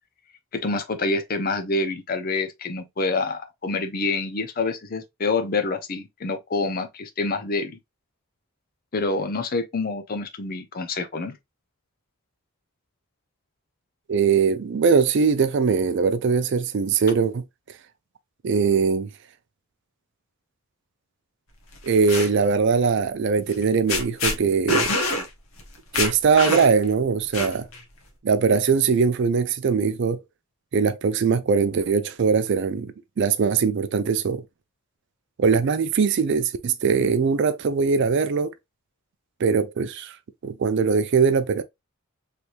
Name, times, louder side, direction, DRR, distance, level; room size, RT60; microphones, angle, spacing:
voice 1, 0.5-7.8 8.9-11.4, left 3 dB, 40° left, 0.6 m, -27 dB
voice 2, 14.1-17.4 18.4-19.1 21.8-24.9 25.9-27.7 28.2-30.2 30.7-34.4 35.4-38.5 39.4-40.1 40.4-41.6, right 5 dB, 55° right, 0.4 m, -21 dB
sound 1, 21.8-22.3 23.5-23.6 23.9-24.4 24.7-25.3 25.6-25.7 25.9-26.8 27.3-27.8, left 2 dB, 75° left, 1.0 m, -25 dB
3.3 x 3.0 x 2.4 m
head